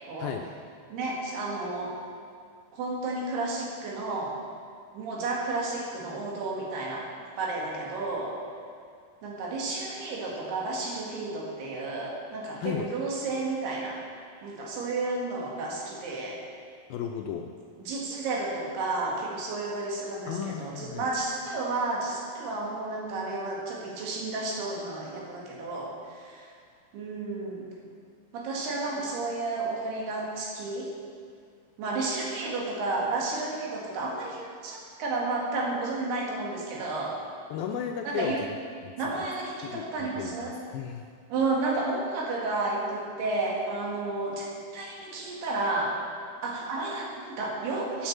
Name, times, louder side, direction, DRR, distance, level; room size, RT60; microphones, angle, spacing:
voice 1, 0.9-2.0 2.7-4.4 4.9-7.1 7.4-8.4 9.2-14.0 14.4-16.4 17.9-26.5 26.9-27.7 28.3-30.9 31.8-37.2 38.1-38.4 39.0-40.5 41.3-45.9 46.4-48.1, right 3 dB, 80° right, -3 dB, 3.9 m, -32 dB
voice 2, 16.9-17.5 20.3-21.1 37.5-38.5 38.8-39.3 39.6-41.1, left 8 dB, 80° left, 3 dB, 2.1 m, -34 dB
9.3 x 8.2 x 7.3 m, 2.2 s
omnidirectional pair, 4.6 m